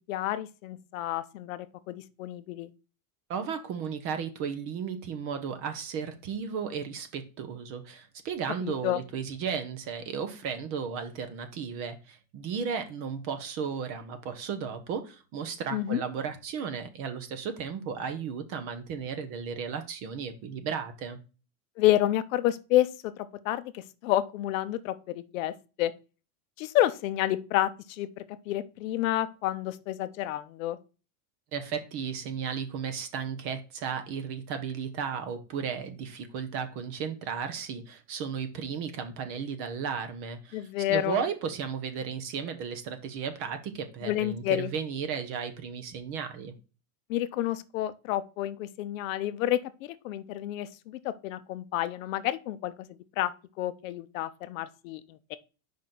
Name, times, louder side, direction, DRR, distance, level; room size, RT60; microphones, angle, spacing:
voice 1, 0.1-2.7 8.6-9.0 15.7-16.0 21.8-25.9 26.6-30.8 40.5-41.2 44.0-44.7 47.1-53.3 53.6-55.4, left 14 dB, 60° left, 0.7 m, -29 dB
voice 2, 3.3-21.2 31.5-46.5, right 6 dB, 30° right, 0.7 m, -34 dB
5.2 x 3.9 x 5.8 m
supercardioid pair, 170°, 45 cm